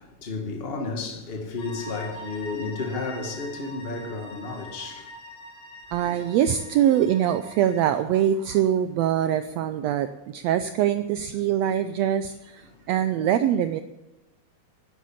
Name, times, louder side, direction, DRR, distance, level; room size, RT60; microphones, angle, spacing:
voice 1, 0.0-5.1 6.0-6.2, left 3 dB, 25° left, 1.5 m, -32 dB
sound 1, 1.6-7.8, left 1 dB, 55° left, 2.6 m, -43 dB
voice 2, 5.9-13.8, right 10 dB, 80° right, 1.5 m, -23 dB
10.0 x 10.0 x 7.2 m
omnidirectional pair, 3.4 m